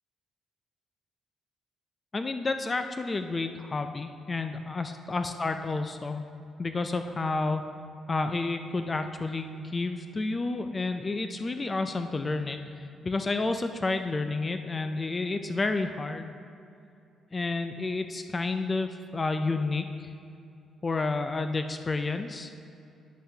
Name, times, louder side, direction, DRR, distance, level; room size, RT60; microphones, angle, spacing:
voice 1, 2.1-6.3 6.6-7.7 8.1-16.3 17.3-20.1 20.8-22.5, left 3 dB, 30° left, 7 dB, 0.4 m, -30 dB
10.0 x 7.7 x 2.8 m, 2.6 s
cardioid pair, 90°, 0 cm